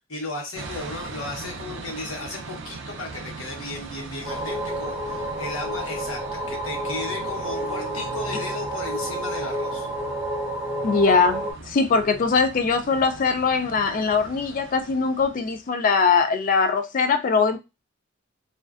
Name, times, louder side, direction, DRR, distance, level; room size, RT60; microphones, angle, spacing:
voice 1, 0.1-9.9, left 2 dB, 80° left, 1.0 m, -35 dB
sound 1, 0.5-15.7, right 3 dB, 60° right, 0.4 m, -40 dB
sound 2, 4.2-11.5, right 1 dB, 15° right, 0.6 m, -30 dB
voice 2, 10.8-17.6, left 5 dB, 40° left, 0.3 m, -21 dB
2.4 x 2.2 x 2.3 m
head